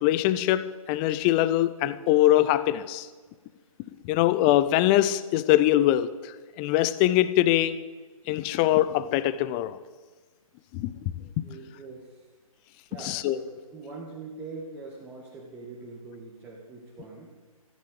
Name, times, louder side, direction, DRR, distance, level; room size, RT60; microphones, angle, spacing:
voice 1, 0.0-3.1 4.0-7.8 8.3-9.8 10.7-11.4 13.0-13.4, left 14 dB, 15° left, 15 dB, 0.4 m, -23 dB
voice 2, 11.4-12.2 12.9-17.3, right 3 dB, 10° right, -3 dB, 2.1 m, -43 dB
15.0 x 10.5 x 8.3 m, 1.3 s
figure-of-eight pair, 140°, 19 cm